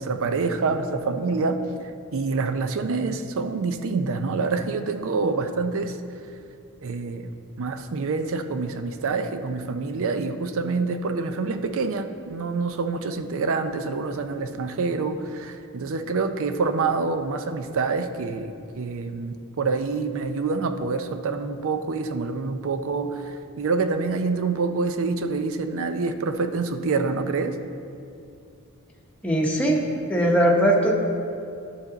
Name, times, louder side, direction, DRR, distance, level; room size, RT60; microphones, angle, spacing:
voice 1, 0.0-1.6 2.1-6.0 6.8-7.3 7.6-27.6, right 4 dB, 65° right, 9 dB, 0.5 m, -26 dB
voice 2, 29.2-29.8 30.1-30.9, right 1 dB, 5° left, -2 dB, 1.0 m, -20 dB
11.0 x 5.9 x 3.9 m, 2.6 s
head